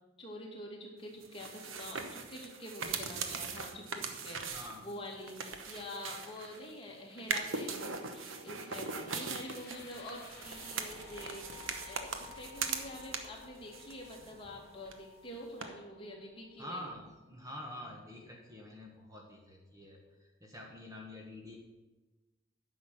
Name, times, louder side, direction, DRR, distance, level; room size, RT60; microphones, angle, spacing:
voice 1, 0.2-16.9, left 1 dB, 25° left, -2 dB, 2.2 m, -46 dB
sound 1, 1.2-6.7 7.2-13.4 13.7-14.6 14.9-15.0 15.6-15.7, right 5 dB, 75° right, 1.1 m, -40 dB
voice 2, 4.5-4.9 14.2-14.3 16.6-21.6, left 1 dB, 15° right, 0 dB, 1.4 m, -47 dB
sound 2, 9.1-17.2, left 4 dB, 55° left, 2.1 m, -54 dB
9.9 x 6.2 x 7.7 m, 1.1 s
head